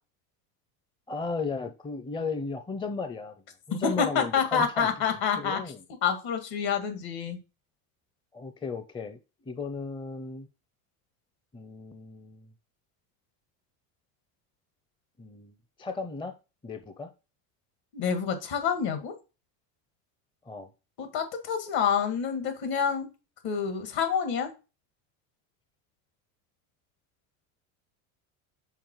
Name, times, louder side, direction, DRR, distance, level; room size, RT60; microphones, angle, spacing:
voice 1, 1.1-3.3 3.7-4.9 5.4-5.8 8.3-9.2 9.4-10.5 11.5-12.5 15.2-16.4 16.6-17.1 20.5-20.7, left 4 dB, 10° left, 0.6 m, -35 dB
voice 2, 3.8-5.6 6.0-7.4 17.9-19.1 21.0-23.1 23.4-24.5, left 7 dB, 60° left, 2.0 m, -27 dB
5.8 x 4.6 x 4.6 m
supercardioid pair, 100°, 43 cm